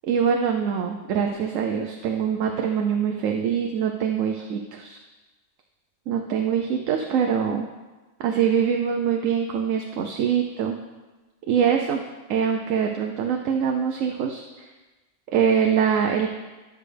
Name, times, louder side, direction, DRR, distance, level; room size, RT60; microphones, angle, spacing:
voice 1, 0.1-5.0 6.1-7.7 8.2-10.8 11.5-12.0 12.3-14.4 15.3-16.3, right 7 dB, 75° right, 3 dB, 1.0 m, -23 dB
12.0 x 6.3 x 3.3 m, 1.2 s
omnidirectional pair, 1.4 m